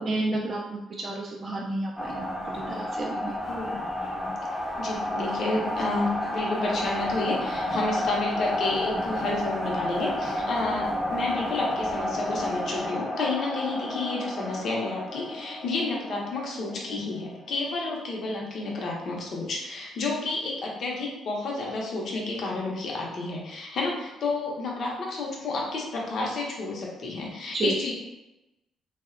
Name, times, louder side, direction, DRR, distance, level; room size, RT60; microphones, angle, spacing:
voice 1, 0.0-3.3 27.5-27.7, right 2 dB, 40° right, -2 dB, 0.3 m, -31 dB
sound 1, 2.0-17.8, left 1 dB, 10° left, 0.5 m, -31 dB
voice 2, 4.4-27.9, left 3 dB, 60° left, -2 dB, 0.6 m, -30 dB
2.6 x 2.1 x 2.4 m, 0.96 s
cardioid pair, 90°, 0 cm